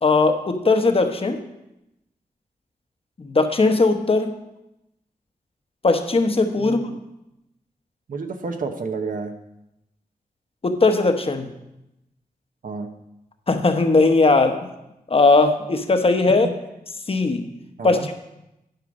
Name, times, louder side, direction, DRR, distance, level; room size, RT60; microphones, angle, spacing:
voice 1, 0.0-1.4 3.2-4.3 5.8-6.9 10.6-11.5 13.5-14.6 15.1-16.5 17.1-17.5 17.8-18.1, left 3 dB, 40° left, 6 dB, 1.0 m, -18 dB
voice 2, 6.6-7.0 8.1-9.3 12.6-12.9 17.8-18.1, right 4 dB, 60° right, 6 dB, 0.8 m, -30 dB
10.5 x 5.0 x 5.2 m, 0.90 s
wide cardioid pair, 80°, 16 cm